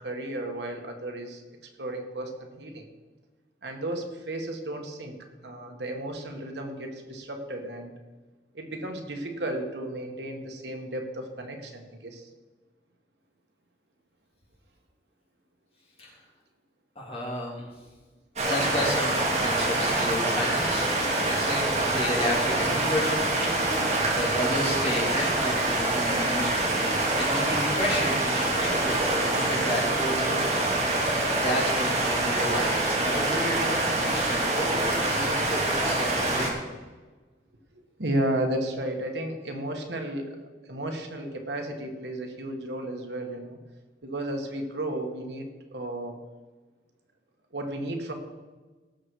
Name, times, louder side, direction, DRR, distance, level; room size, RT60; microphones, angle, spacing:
voice 1, 0.0-1.4 1.8-2.9 3.6-7.9 8.5-12.3 37.7-40.4 40.6-43.6 44.0-46.2 47.5-48.1, right 1 dB, 80° right, 4 dB, 1.8 m, -33 dB
voice 2, 16.9-17.7 18.4-20.9 21.2-30.6 31.3-33.6 34.0-36.5, left 1 dB, 35° left, -3 dB, 3.3 m, -32 dB
sound 1, 18.4-36.5, right 2 dB, 40° right, 2.6 m, -25 dB
17.5 x 6.9 x 4.8 m, 1.3 s
head